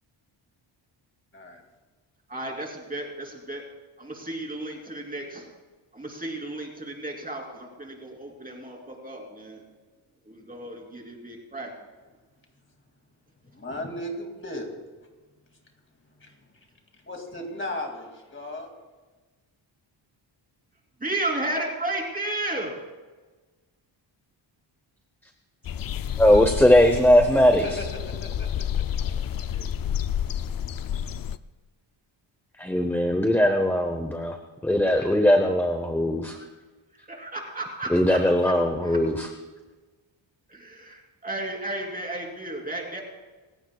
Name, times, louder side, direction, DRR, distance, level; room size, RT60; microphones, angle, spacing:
voice 1, 2.3-3.6 4.0-5.5 5.9-9.6 10.2-11.7 21.0-22.9 29.0-29.7 37.1-38.5 38.8-39.0 40.5-43.0, right 2 dB, 20° right, 0 dB, 3.2 m, -33 dB
voice 2, 13.5-14.8 16.2-16.7 16.9-18.7 27.6-28.8, left 1 dB, 25° left, 2 dB, 2.4 m, -36 dB
sound 1, 25.6-31.4, left 9 dB, 50° left, 0.5 m, -30 dB
voice 3, 26.2-27.6 32.6-34.4 34.6-36.4 37.9-39.3, left 1 dB, 5° left, 5 dB, 0.7 m, -20 dB
28.0 x 16.0 x 2.3 m, 1.3 s
wide cardioid pair, 160°, 47 cm